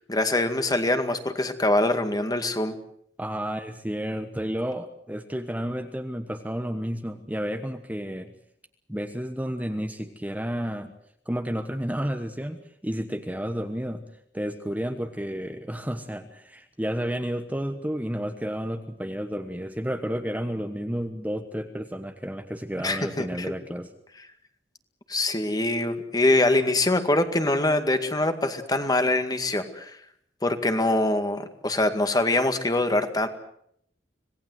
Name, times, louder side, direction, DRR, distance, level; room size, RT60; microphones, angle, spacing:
voice 1, 0.1-2.8 22.8-23.5 25.1-30.0 30.4-33.3, left 2 dB, 20° left, 8 dB, 2.1 m, -24 dB
voice 2, 3.2-8.3 8.9-10.9 11.3-14.0 14.3-23.9, equal, 10° right, 6 dB, 1.3 m, -31 dB
26.5 x 18.5 x 8.0 m, 0.70 s
head